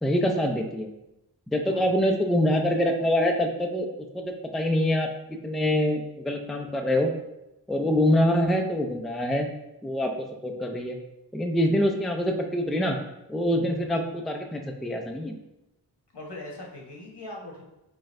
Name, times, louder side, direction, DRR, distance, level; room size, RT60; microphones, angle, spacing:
voice 1, 0.0-0.9 1.5-3.9 4.1-7.1 7.7-9.5 9.8-11.0 11.3-13.0 13.3-15.3, left 1 dB, ahead, 3 dB, 0.4 m, -25 dB
voice 2, 16.1-17.6, left 1 dB, 75° left, -2 dB, 1.2 m, -40 dB
4.3 x 3.9 x 2.5 m, 0.90 s
wide cardioid pair, 55°, 41 cm